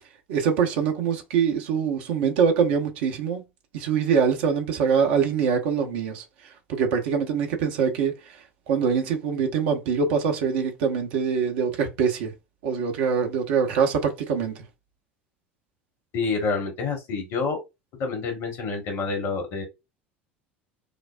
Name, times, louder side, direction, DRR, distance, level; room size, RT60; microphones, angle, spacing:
voice 1, 0.3-3.4 3.7-6.2 6.7-8.1 8.7-12.3 12.6-14.6, right 6 dB, 60° right, 0.8 m, -24 dB
voice 2, 16.1-17.6 18.0-19.6, left 4 dB, 50° left, 1.3 m, -28 dB
5.0 x 2.0 x 2.4 m
figure-of-eight pair, 70°, 6 cm